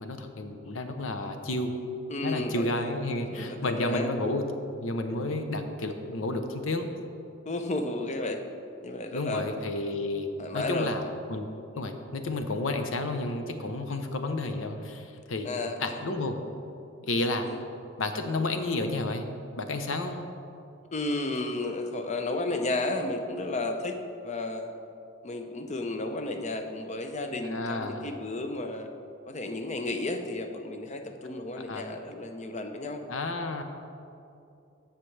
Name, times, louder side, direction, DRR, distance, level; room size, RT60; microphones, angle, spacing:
voice 1, 0.0-1.7 2.2-4.4 4.7-6.9 9.1-10.3 10.5-11.5 11.8-15.5 15.8-16.4 17.0-17.5 18.0-19.3 19.6-20.3 27.4-28.1 31.7-31.8 33.1-33.6, left 2 dB, 85° left, 7 dB, 0.8 m, -31 dB
voice 2, 2.1-2.9 3.3-4.1 7.5-8.4 8.8-9.5 10.4-10.9 13.9-14.1 15.4-16.0 17.4-17.6 20.9-24.7 25.2-28.9 29.3-33.0, left 2 dB, 35° left, 5 dB, 0.6 m, -33 dB
15.0 x 5.8 x 3.3 m, 2.7 s
head